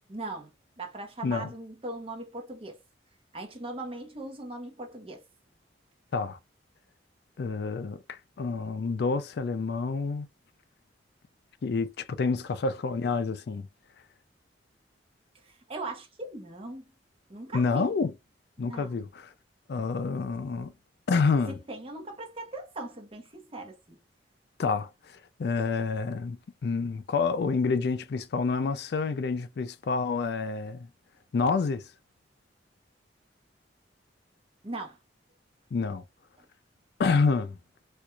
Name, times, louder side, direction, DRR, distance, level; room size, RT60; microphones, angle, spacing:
voice 1, 0.1-0.5 0.8-2.8 3.3-5.2 15.4-16.8 17.3-17.9 18.6-19.0 21.5-24.0 34.6-35.0, right 2 dB, 30° right, 0.9 m, -39 dB
voice 2, 7.4-10.3 11.6-13.7 17.5-18.1 18.6-19.3 19.7-20.7 21.1-21.6 24.6-26.4 26.6-30.9 31.3-31.9 35.7-36.0 37.0-37.6, left 4 dB, 60° left, 0.4 m, -28 dB
4.4 x 2.5 x 2.2 m
head